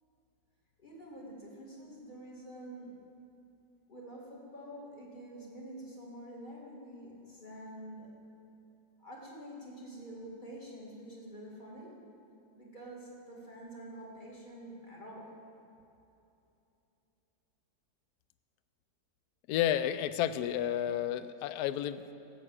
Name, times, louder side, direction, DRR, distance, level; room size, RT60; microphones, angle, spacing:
voice 1, 0.8-3.0 3.9-8.1 9.0-11.9 12.6-15.3, right 1 dB, 25° left, -3 dB, 2.5 m, -47 dB
voice 2, 19.5-22.0, left 11 dB, 70° left, 13 dB, 0.9 m, -31 dB
12.5 x 8.5 x 7.4 m, 2.8 s
omnidirectional pair, 2.0 m